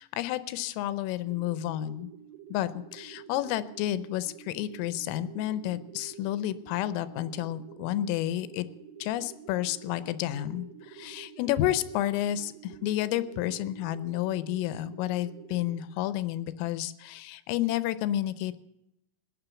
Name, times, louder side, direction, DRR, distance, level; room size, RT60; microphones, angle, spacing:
voice 1, 0.0-2.1 2.5-8.7 9.0-18.6, left 13 dB, 80° left, 14 dB, 3.3 m, -31 dB
sound 1, 1.2-15.8, right 8 dB, 70° right, 2.3 m, -49 dB
19.0 x 9.6 x 7.0 m, 0.86 s
omnidirectional pair, 6.0 m